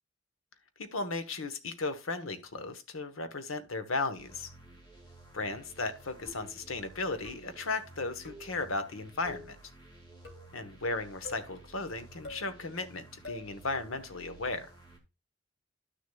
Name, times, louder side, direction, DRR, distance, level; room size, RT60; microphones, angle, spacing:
voice 1, 0.8-4.5 5.3-9.6 10.5-14.7, left 3 dB, 90° left, 1.1 m, -35 dB
sound 1, 4.2-15.0, right 2 dB, 20° left, 1.8 m, -54 dB
sound 2, 6.2-6.6 7.2-7.6 8.2-8.6 9.2-9.5 10.2-10.6 11.2-11.5 12.2-12.5 13.2-13.5, left 2 dB, 65° left, 2.5 m, -46 dB
11.5 x 6.4 x 2.3 m
head